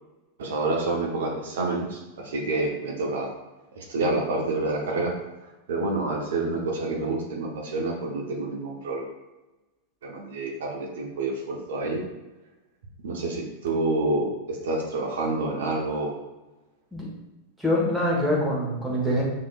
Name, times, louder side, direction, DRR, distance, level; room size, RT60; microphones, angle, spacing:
voice 1, 0.4-3.3 3.8-5.1 5.7-9.1 10.0-12.0 13.0-16.1, right 2 dB, 60° right, 1 dB, 0.8 m, -28 dB
voice 2, 17.6-19.2, left 1 dB, 5° right, -5 dB, 1.2 m, -24 dB
5.5 x 3.2 x 2.3 m, 1.1 s
figure-of-eight pair, 90°, 0 cm